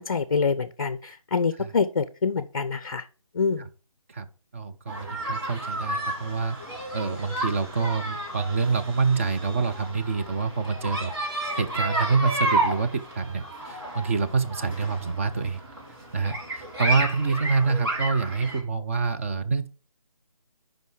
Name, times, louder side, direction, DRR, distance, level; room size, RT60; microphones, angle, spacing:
voice 1, 0.0-3.1 3.3-3.7, left 5 dB, 40° left, 13 dB, 0.5 m, -26 dB
voice 2, 4.5-6.6 6.9-15.6 16.1-19.7, right 4 dB, 25° right, 7 dB, 0.6 m, -26 dB
sound 1, 4.9-18.6, right 1 dB, 45° right, 4.7 m, -32 dB
9.2 x 5.3 x 4.8 m, 0.36 s
figure-of-eight pair, 155°, 18 cm